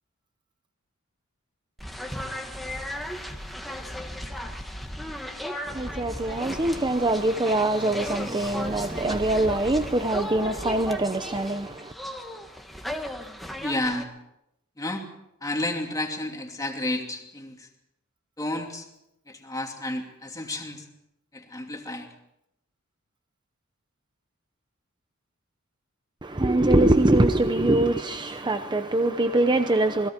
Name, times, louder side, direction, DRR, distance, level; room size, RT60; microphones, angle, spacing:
sound 1, 1.8-14.0, equal, ahead, 1.7 m, -36 dB
voice 1, 5.7-11.9 26.2-30.1, right 2 dB, 20° right, 0.7 m, -23 dB
voice 2, 13.6-14.1 14.8-15.1 15.4-17.7 18.4-18.9 19.3-20.9 21.3-22.1, left 1 dB, 15° left, 2.7 m, -31 dB
28.0 x 20.5 x 4.5 m
head